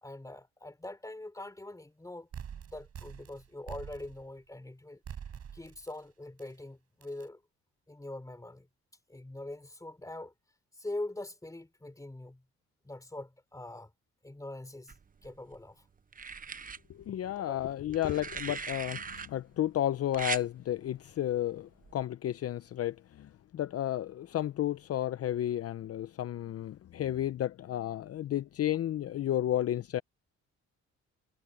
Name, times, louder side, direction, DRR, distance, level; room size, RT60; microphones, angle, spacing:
voice 1, 0.0-5.0 5.5-7.4 7.9-8.7 9.1-10.3 10.8-12.4 12.8-13.9 14.2-15.0 15.2-15.8 17.3-17.6, left 2 dB, 10° left, 3.3 m, -43 dB
sound 1, 2.3-4.4 5.0-6.0 6.4-6.5 7.0-7.2, right 8 dB, 55° right, 5.1 m, -45 dB
sound 2, 14.9-15.6 16.1-16.8 17.9-19.3 20.1-20.5 21.8-22.0, right 5 dB, 30° right, 0.9 m, -39 dB
voice 2, 16.9-30.0, left 12 dB, 50° left, 0.6 m, -32 dB
cardioid pair, 90°, 30 cm